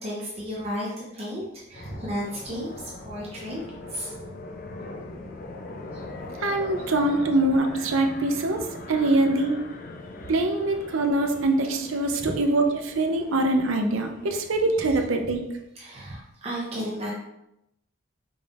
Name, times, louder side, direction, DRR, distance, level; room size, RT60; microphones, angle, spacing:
voice 1, 0.0-3.6 3.9-4.1 5.9-6.0 12.2-12.4 15.8-17.1, equal, 30° right, -4 dB, 0.7 m, -33 dB
sound 1, 1.7-14.9, left 2 dB, 40° left, 0.4 m, -41 dB
voice 2, 6.4-9.5 10.3-15.4, right 2 dB, 75° right, 4 dB, 0.6 m, -23 dB
5.2 x 3.4 x 2.5 m, 0.86 s
head